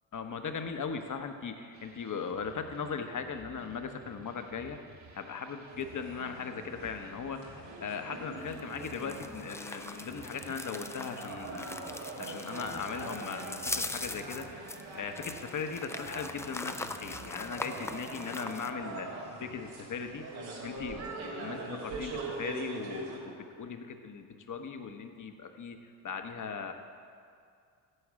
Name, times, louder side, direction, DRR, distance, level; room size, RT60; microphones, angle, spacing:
voice 1, 0.1-4.8 5.2-11.7 12.2-14.6 14.9-19.1 19.4-20.3 20.6-26.7, left 6 dB, 40° left, 6 dB, 1.0 m, -38 dB
sound 1, 1.7-18.1, right 3 dB, 40° right, 1.1 m, -55 dB
sound 2, 5.7-23.2, right 2 dB, 85° right, 1.7 m, -43 dB
sound 3, 8.4-18.7, left 2 dB, 5° left, 0.3 m, -42 dB
9.8 x 4.8 x 7.5 m, 2.3 s
supercardioid pair, 60°, 45 cm